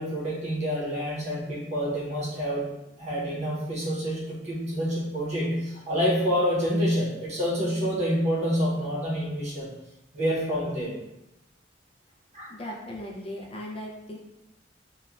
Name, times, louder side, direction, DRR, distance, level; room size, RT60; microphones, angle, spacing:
voice 1, 0.0-2.7 3.0-9.7 10.1-11.0 12.3-12.5, equal, 40° right, -5 dB, 0.8 m, -27 dB
voice 2, 12.5-14.2, left 1 dB, 30° left, -2 dB, 0.4 m, -37 dB
2.9 x 2.2 x 2.3 m, 0.90 s
head